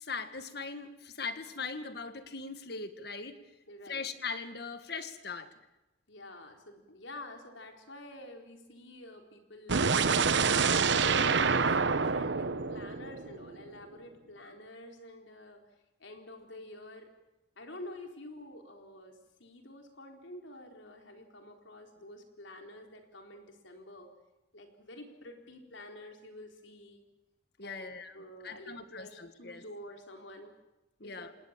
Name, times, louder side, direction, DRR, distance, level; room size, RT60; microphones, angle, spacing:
voice 1, 0.0-3.4 3.9-5.6 27.6-28.1 28.4-29.6 31.0-31.3, left 4 dB, 55° left, 10 dB, 1.8 m, -40 dB
voice 2, 3.7-4.0 6.1-9.9 10.7-15.6 16.0-17.1 17.6-24.1 24.5-27.0 27.6-27.9 28.1-30.5 31.0-31.3, left 1 dB, 75° left, 3 dB, 4.2 m, -49 dB
sound 1, 9.7-13.7, right 5 dB, 65° right, 0.9 m, -27 dB
28.5 x 19.5 x 7.5 m, 0.99 s
head